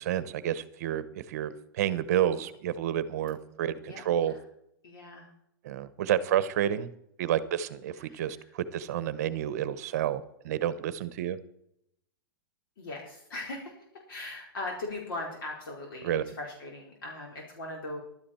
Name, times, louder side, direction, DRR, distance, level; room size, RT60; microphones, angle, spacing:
voice 1, 0.0-4.3 5.6-6.9 7.2-11.4 16.0-16.2, right 11 dB, 45° right, 15 dB, 0.9 m, -30 dB
voice 2, 3.5-4.0 4.3-4.4 4.8-5.3 8.0-8.3 12.8-13.7 14.1-18.0, left 2 dB, 65° left, -1 dB, 4.2 m, -39 dB
15.5 x 12.0 x 4.3 m, 0.75 s
supercardioid pair, 175°, 12 cm